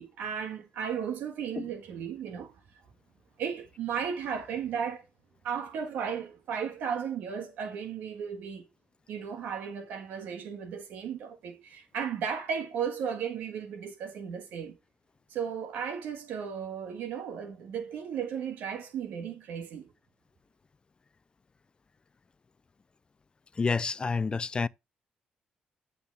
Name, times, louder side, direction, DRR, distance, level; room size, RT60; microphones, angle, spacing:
voice 1, 0.0-2.5 3.4-5.0 5.4-8.7 9.1-14.8 15.3-19.9, right 7 dB, 90° right, 1.5 m, -35 dB
voice 2, 23.6-24.7, left 4 dB, 30° left, 0.4 m, -29 dB
8.4 x 6.9 x 3.4 m
cardioid pair, 80°, 3 cm